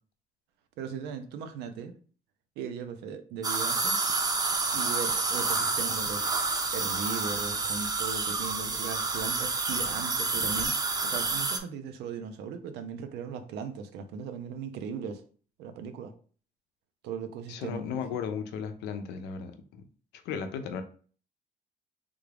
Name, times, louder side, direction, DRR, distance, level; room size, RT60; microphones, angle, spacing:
voice 1, 0.8-1.9 2.6-4.0 4.7-6.3 6.7-10.7 11.0-15.2 15.6-16.1 17.0-18.0, right 6 dB, 85° right, 0.6 m, -38 dB
sound 1, 3.4-11.6, right 3 dB, 25° right, 0.6 m, -29 dB
voice 2, 17.5-19.8 20.2-20.8, left 6 dB, 85° left, 0.6 m, -35 dB
3.5 x 2.4 x 3.3 m
cardioid pair, 110°, 17 cm